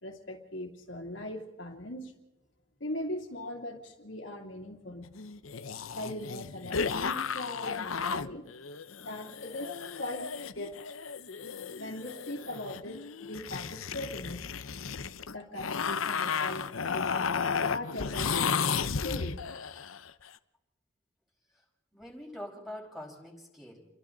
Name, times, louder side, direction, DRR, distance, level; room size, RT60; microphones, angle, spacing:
voice 1, 0.0-2.1 2.8-5.1 5.9-8.5 9.0-11.0 11.7-14.5 15.3-19.5, left 1 dB, 65° left, 1 dB, 2.8 m, -40 dB
sound 1, 5.1-20.1, left 6 dB, 90° left, 0.8 m, -34 dB
voice 2, 21.9-23.8, left 1 dB, ahead, -2 dB, 5.1 m, -44 dB
29.5 x 23.5 x 4.0 m, 0.98 s
head